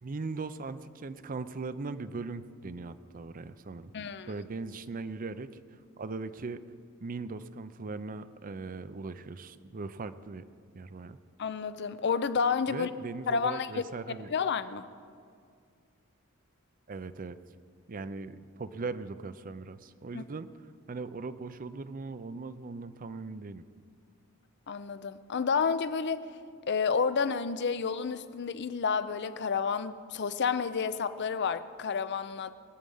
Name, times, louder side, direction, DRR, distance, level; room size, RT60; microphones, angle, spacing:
voice 1, 0.0-3.9 4.3-5.5 6.0-6.6 7.0-10.4 10.8-11.2 12.7-14.3 16.9-17.4 17.9-20.5 20.9-23.6, right 3 dB, 40° right, 0.5 m, -39 dB
voice 2, 3.9-4.3 11.4-12.9 13.3-13.9 14.3-14.9 20.1-20.2 24.7-26.3 26.7-32.5, left 5 dB, 55° left, 0.6 m, -30 dB
21.5 x 8.7 x 5.5 m
head